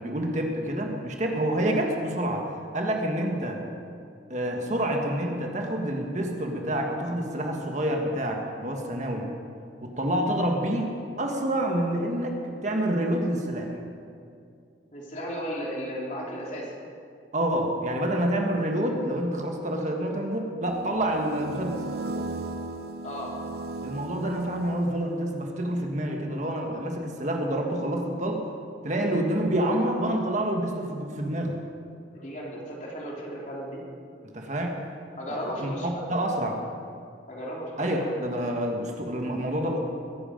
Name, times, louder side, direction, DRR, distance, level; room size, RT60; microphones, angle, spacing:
voice 1, 0.0-3.6 4.3-9.3 9.8-10.9 11.2-13.7 17.3-21.8 23.8-28.4 28.8-31.6 34.3-34.8 35.3-36.6 37.8-39.8, right 1 dB, 40° right, 1 dB, 1.6 m, -28 dB
voice 2, 14.9-16.7 23.0-23.4 32.1-33.8 35.2-36.1 37.3-38.1, equal, 40° left, -3 dB, 3.4 m, -35 dB
sound 1, 20.6-25.3, right 2 dB, 60° right, 0.9 m, -36 dB
22.0 x 11.0 x 5.2 m, 2.3 s
head